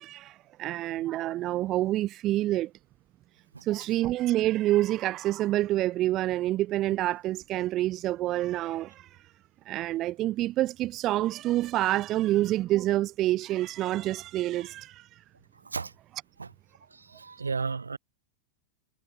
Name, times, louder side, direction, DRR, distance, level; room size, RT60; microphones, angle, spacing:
voice 1, 0.0-2.7 3.6-9.2 9.7-15.1, right 15 dB, 35° right, 0.7 m, -27 dB
voice 2, 16.9-18.0, right 4 dB, 75° right, 1.5 m, -34 dB
figure-of-eight pair, 90°, 0 cm